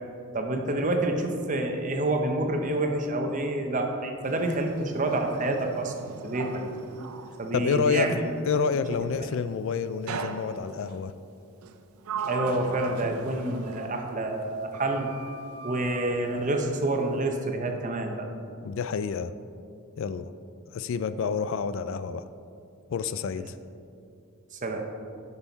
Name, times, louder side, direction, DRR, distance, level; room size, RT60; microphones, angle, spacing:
voice 1, 0.3-6.6 7.4-8.2 12.3-15.1 15.6-18.3 21.2-21.3 24.6-24.8, right 2 dB, 35° right, 3 dB, 0.8 m, -28 dB
Sliding door, 4.2-8.3 10.1-11.0 11.6-14.5 14.7-16.1, right 5 dB, 80° right, 0.5 m, -39 dB
voice 2, 7.5-11.1 18.6-19.3 20.0-20.3 20.7-22.3 22.9-23.5, left 5 dB, 60° left, 12 dB, 0.3 m, -28 dB
11.5 x 5.6 x 4.0 m, 2.5 s
head